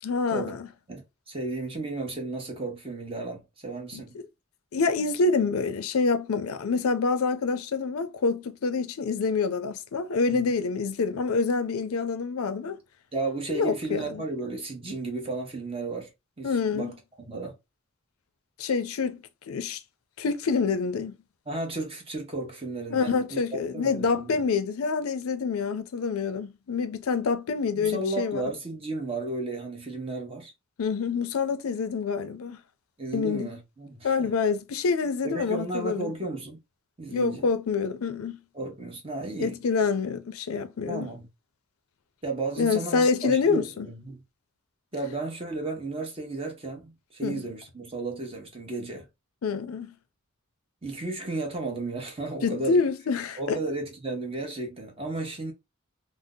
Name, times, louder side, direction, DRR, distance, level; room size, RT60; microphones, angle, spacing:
voice 1, 0.0-0.7 3.9-4.0 4.7-12.8 13.5-14.2 16.4-16.9 18.6-19.8 20.2-21.2 22.9-28.5 30.8-32.6 33.1-33.5 34.0-36.1 37.1-38.4 39.4-41.1 42.6-43.9 47.2-47.4 49.4-50.0 52.4-53.6, left 4 dB, 90° left, 0.5 m, -27 dB
voice 2, 0.9-4.1 10.3-10.5 13.1-16.1 16.4-17.5 21.5-24.4 27.8-30.5 33.0-34.3 35.2-36.6 37.0-37.5 38.5-39.6 40.9-41.3 42.2-44.2 44.9-49.1 50.8-52.8 53.4-55.5, right 2 dB, 25° right, 0.9 m, -34 dB
2.7 x 2.0 x 3.6 m
head